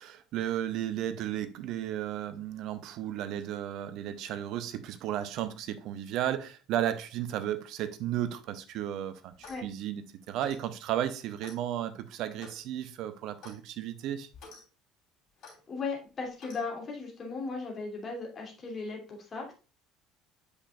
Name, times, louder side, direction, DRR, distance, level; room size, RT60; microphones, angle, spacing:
voice 1, 0.0-14.3, right 11 dB, 55° right, 0.7 m, -34 dB
Clock, 9.3-9.7 10.4-10.7 11.4-11.6 12.4-12.6 13.4-13.6 14.3-14.6 15.4-15.6 16.4-16.6, left 3 dB, 50° left, 3.3 m, -49 dB
voice 2, 15.7-19.5, left 4 dB, 35° left, 2.5 m, -37 dB
8.2 x 5.4 x 2.4 m
figure-of-eight pair, 60°, 0 cm